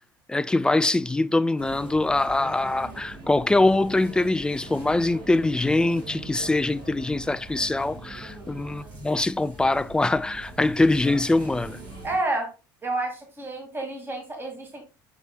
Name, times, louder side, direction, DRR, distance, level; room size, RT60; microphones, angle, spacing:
voice 1, 0.3-11.8, left 2 dB, 5° left, 0.3 m, -23 dB
sound 1, 1.6-12.2, right 2 dB, 75° right, 3.6 m, -42 dB
voice 2, 8.2-8.5 12.0-12.5 12.8-14.8, right 2 dB, 20° right, 2.3 m, -30 dB
7.0 x 5.8 x 2.3 m
hypercardioid pair, 75°, 11 cm